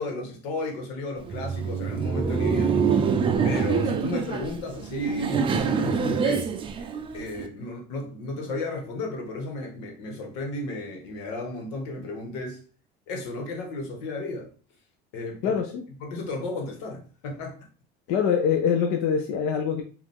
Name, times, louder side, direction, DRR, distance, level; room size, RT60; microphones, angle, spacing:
voice 1, 0.0-2.8 3.4-6.5 7.1-12.6 13.1-14.5 15.1-15.6 16.0-17.6, left 2 dB, 90° left, 1.5 m, -33 dB
Laughter, 1.2-7.5, right 6 dB, 25° right, 0.5 m, -25 dB
voice 2, 15.4-15.8 18.1-19.8, left 7 dB, 65° left, 0.7 m, -24 dB
4.8 x 2.6 x 3.6 m
cardioid pair, 130°, 21 cm